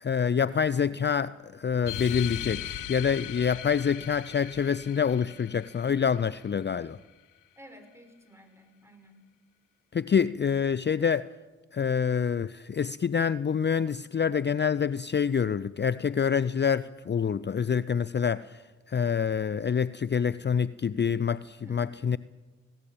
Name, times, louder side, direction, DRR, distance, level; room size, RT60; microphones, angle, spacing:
voice 1, 0.0-7.0 9.9-11.3 11.7-18.6 18.9-22.2, left 7 dB, 35° left, 0.6 m, -26 dB
sound 1, 1.8-6.9, left 12 dB, 90° left, 1.2 m, -39 dB
voice 2, 7.6-9.2 21.6-22.2, equal, 10° right, 5.7 m, -52 dB
19.5 x 18.0 x 8.7 m
supercardioid pair, 45°, 31 cm